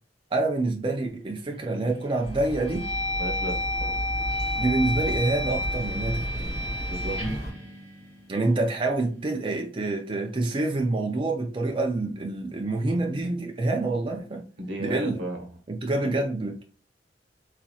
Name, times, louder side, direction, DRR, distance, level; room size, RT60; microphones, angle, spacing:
voice 1, 0.3-2.9 4.6-6.6 8.3-14.5 14.8-15.2 15.7-16.6, right 2 dB, 30° right, 0.5 m, -27 dB
sound 1, 1.5-1.9 2.4-8.6, left 1 dB, 5° left, 1.6 m, -31 dB
sound 2, 2.2-7.5, equal, 65° left, 1.9 m, -34 dB
voice 2, 3.2-4.1 6.9-7.2 14.6-15.5 16.0-16.1, right 1 dB, 75° right, 1.0 m, -34 dB
4.0 x 2.9 x 2.3 m
head